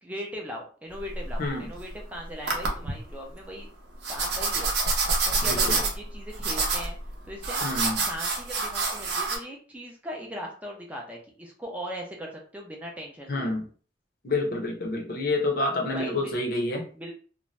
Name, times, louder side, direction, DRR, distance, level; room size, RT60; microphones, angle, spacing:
voice 1, 0.0-3.7 4.1-4.7 5.3-7.0 7.3-7.7 8.1-13.5 15.9-16.3 17.0-17.1, equal, 10° right, -1 dB, 0.4 m, -39 dB
sound 1, 0.9-2.0 2.5-2.9 4.0-9.4, right 3 dB, 60° right, 0.6 m, -27 dB
voice 2, 1.4-1.7 5.4-5.8 7.6-8.0 13.3-13.7 14.2-16.8, left 2 dB, 50° left, 1 dB, 0.6 m, -28 dB
2.5 x 2.1 x 3.0 m, 0.41 s
head